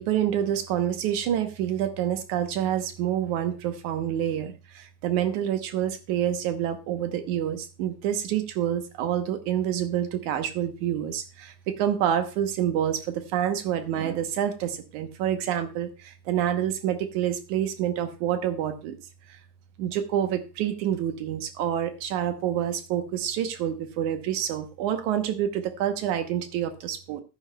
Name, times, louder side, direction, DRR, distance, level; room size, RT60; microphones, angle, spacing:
voice 1, 0.0-19.0 19.3-19.4 19.8-27.2, right 10 dB, 70° right, 8 dB, 2.2 m, -27 dB
12.0 x 10.0 x 2.2 m, 0.30 s
omnidirectional pair, 3.9 m